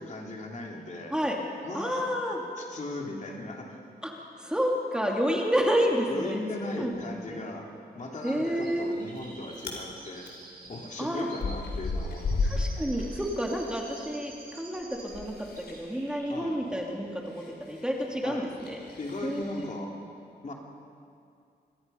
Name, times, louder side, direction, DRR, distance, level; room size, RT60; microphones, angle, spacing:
voice 1, 0.0-1.2 1.6-2.1 2.6-3.8 6.1-10.3 10.7-12.7 16.3-16.6 18.2-18.5 19.0-20.0 20.4-20.5, left 2 dB, 45° left, 1 dB, 2.8 m, -38 dB
voice 2, 1.7-2.4 4.0-4.1 4.4-7.0 7.3-7.4 8.2-8.9 11.0-11.3 12.4-15.3 15.7-18.8 19.2-19.7, equal, 5° right, 0 dB, 2.2 m, -29 dB
Chirp tweet, 8.2-15.3 15.6-16.5 16.7-16.8, right 2 dB, 60° right, 7.7 m, -49 dB
Chewing mastication, 8.8-9.2 9.5-9.8 10.2-14.0 14.3-19.7, left 3 dB, 80° left, 4.3 m, -35 dB
27.0 x 23.5 x 5.5 m, 2.4 s
wide cardioid pair, 165°, 17 cm